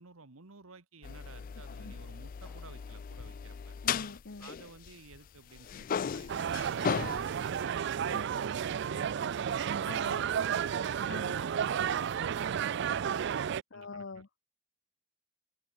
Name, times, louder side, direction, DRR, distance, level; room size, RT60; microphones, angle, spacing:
voice 1, 0.0-3.8 4.4-10.3 11.4-13.3 13.7-14.2, right 3 dB, 75° right, 1.4 m, -53 dB
sound 1, 1.0-5.3 5.5-7.6, left 7 dB, 40° left, 0.3 m, -37 dB
sound 2, 2.4-5.0 5.4-5.5, right 1 dB, 5° right, 5.1 m, -72 dB
voice 2, 3.8-4.5 8.0-8.3 9.8-10.3 11.1-11.4 13.7-14.4, left 3 dB, 55° left, 0.9 m, -44 dB
sound 3, 6.3-13.6, right 8 dB, 55° right, 0.3 m, -32 dB
open air
head